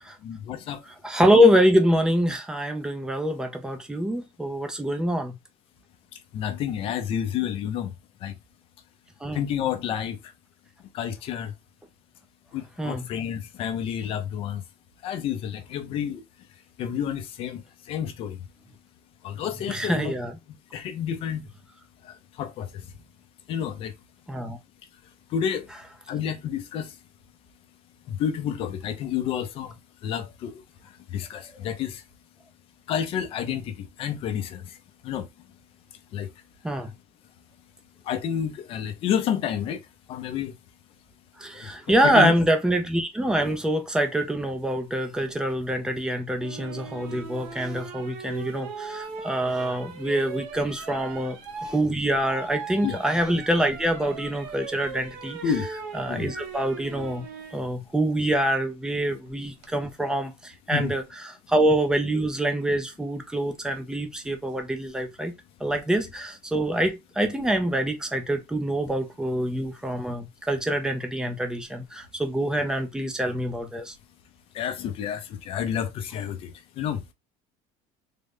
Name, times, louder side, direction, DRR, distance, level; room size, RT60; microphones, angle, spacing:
voice 1, 0.2-0.8 6.1-7.9 8.2-8.3 9.3-10.3 10.9-11.5 12.5-14.6 15.0-16.2 16.8-18.4 19.2-20.1 20.7-21.4 22.0-22.9 23.5-23.9 25.3-25.7 26.1-27.0 28.1-29.8 30.0-32.0 32.9-34.8 35.0-35.3 36.1-36.3 38.0-39.8 40.1-40.5 41.5-41.7 42.0-42.3 52.8-53.0 55.4-55.7 56.1-56.3 60.7-60.9 74.5-77.0, left 9 dB, 40° left, 0.6 m, -30 dB
voice 2, 1.0-5.4 9.2-9.4 12.8-13.1 19.7-20.4 24.3-24.6 36.6-36.9 41.4-51.4 51.6-55.4 55.9-57.2 57.5-61.0 61.5-65.3 65.6-73.9, equal, 5° right, 0.4 m, -25 dB
sound 1, 46.4-57.6 59.3-59.7, right 5 dB, 65° right, 0.8 m, -39 dB
3.7 x 2.1 x 3.4 m
cardioid pair, 175°, 15 cm